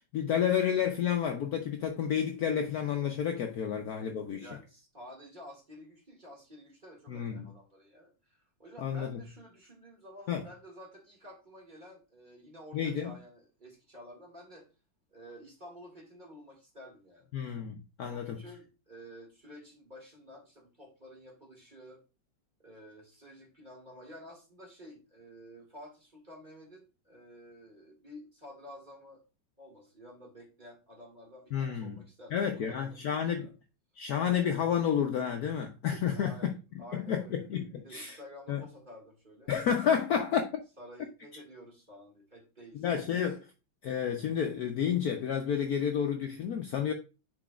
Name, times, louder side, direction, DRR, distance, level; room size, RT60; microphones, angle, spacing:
voice 1, 0.1-4.5 7.1-7.5 8.8-9.2 10.3-10.4 12.7-13.1 17.3-18.4 31.5-32.0 32.3-33.5 34.0-36.5 36.9-38.2 38.5-38.6 39.5-40.5 42.7-43.5 43.8-46.9, left 8 dB, 65° left, 1.0 m, -30 dB
voice 2, 4.4-14.7 15.1-17.3 18.1-22.0 22.6-29.2 29.6-33.5 36.1-36.5 36.8-37.5 37.8-39.5 40.8-42.8, equal, 25° right, 2.0 m, -51 dB
10.0 x 4.2 x 2.3 m
omnidirectional pair, 2.1 m